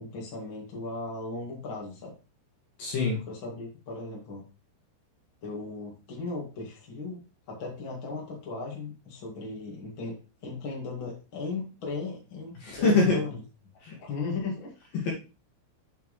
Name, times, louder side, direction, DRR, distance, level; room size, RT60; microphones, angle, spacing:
voice 1, 0.0-2.1 3.3-4.4 5.4-7.2 7.5-10.2 10.4-13.4 14.0-14.7 15.0-15.1, left 3 dB, 40° left, -3 dB, 1.9 m, -37 dB
voice 2, 2.8-3.2 12.6-13.2 13.8-13.9 15.0-15.1, left 3 dB, 55° left, -3 dB, 2.9 m, -24 dB
7.4 x 6.7 x 3.3 m, 0.32 s
omnidirectional pair, 5.8 m